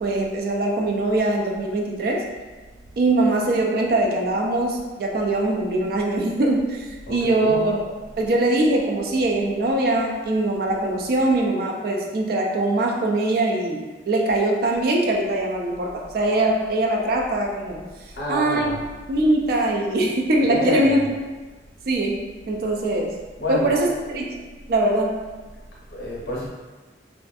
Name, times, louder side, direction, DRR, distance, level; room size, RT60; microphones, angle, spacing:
voice 1, 0.0-2.2 3.0-7.8 8.2-17.8 18.3-18.7 19.1-21.1 21.9-23.1 23.5-25.2, right 2 dB, 55° right, 0 dB, 0.3 m, -22 dB
voice 2, 7.1-7.6 18.1-18.8 20.4-21.1 23.4-24.0 25.9-26.5, equal, 65° left, -5 dB, 0.7 m, -29 dB
2.5 x 2.4 x 2.3 m, 1.3 s
head